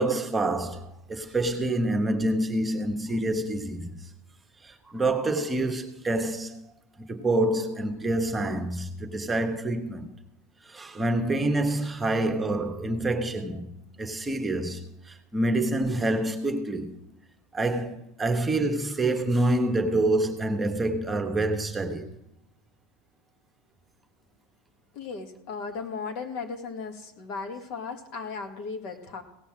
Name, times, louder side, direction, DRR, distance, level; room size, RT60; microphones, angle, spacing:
voice 1, 0.0-3.9 4.6-6.7 7.0-10.1 10.6-13.7 14.0-17.0 17.5-22.1, right 2 dB, 15° right, 1.2 m, -27 dB
voice 2, 24.9-29.2, left 4 dB, 60° left, 1.9 m, -36 dB
17.0 x 5.7 x 7.4 m
supercardioid pair, 120°, 0 cm